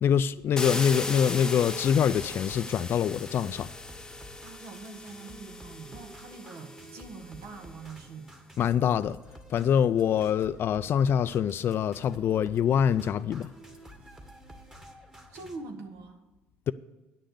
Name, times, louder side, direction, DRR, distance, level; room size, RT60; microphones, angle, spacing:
voice 1, 0.0-3.7 8.6-9.2 9.5-13.5, left 8 dB, 50° left, 0.4 m, -25 dB
sound 1, 0.6-7.4, left 2 dB, 15° left, 0.8 m, -37 dB
sound 2, 1.9-15.6, right 1 dB, 15° right, 1.8 m, -51 dB
voice 2, 4.4-8.3 15.3-16.2, right 4 dB, 70° right, 1.9 m, -44 dB
9.6 x 6.6 x 7.9 m
supercardioid pair, 85°, 5 cm